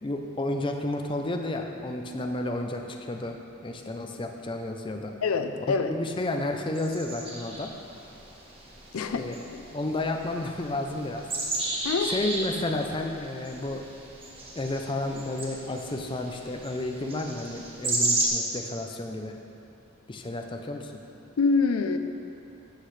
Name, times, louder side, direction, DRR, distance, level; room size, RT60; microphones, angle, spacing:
voice 1, 0.0-3.4 3.6-5.1 5.7-7.7 8.9-9.4 9.7-11.3 12.0-13.8 14.5-19.3 20.1-20.9, left 2 dB, 25° left, 3 dB, 0.5 m, -31 dB
voice 2, 5.2-5.9 8.9-9.2 9.5-9.6 11.8-12.2 21.4-22.0, left 4 dB, 85° left, 8 dB, 0.5 m, -25 dB
sound 1, 6.7-18.3, right 2 dB, 25° right, 1.3 m, -34 dB
13.0 x 7.7 x 3.3 m, 2.6 s
head